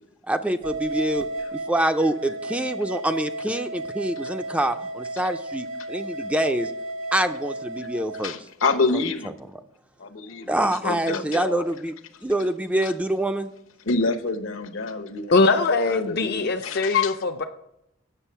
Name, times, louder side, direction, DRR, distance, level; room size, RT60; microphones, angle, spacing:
voice 1, 0.3-1.3 1.7-6.7 7.1-8.3 10.5-11.9 12.2-13.5, right 1 dB, 5° right, 0.3 m, -25 dB
sound 1, 0.6-8.3, right 2 dB, 70° right, 1.1 m, -33 dB
voice 2, 8.2-9.3 10.0-11.6 12.8-12.9 13.8-15.5 15.9-17.2, left 4 dB, 75° left, 1.0 m, -27 dB
voice 3, 15.3-17.4, left 3 dB, 50° left, 0.5 m, -22 dB
9.0 x 6.7 x 5.5 m
head